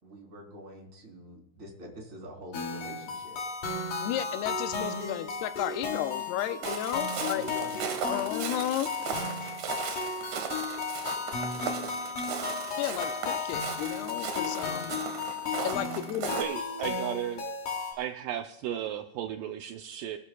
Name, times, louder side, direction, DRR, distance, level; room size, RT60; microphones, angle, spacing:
voice 1, 0.0-3.4 7.3-9.1, right 1 dB, 20° right, -1 dB, 3.6 m, -45 dB
sound 1, 2.5-17.9, left 4 dB, 55° left, 3.5 m, -34 dB
voice 2, 4.0-7.4 8.1-8.9 12.8-15.0 15.6-16.4, left 12 dB, 85° left, 10 dB, 2.7 m, -33 dB
Walk footsteps, 6.6-16.4, right 7 dB, 60° right, 2.3 m, -37 dB
voice 3, 16.3-17.5 18.0-20.2, right 11 dB, 85° right, 6 dB, 1.9 m, -35 dB
25.0 x 12.5 x 2.3 m, 0.89 s
omnidirectional pair, 4.6 m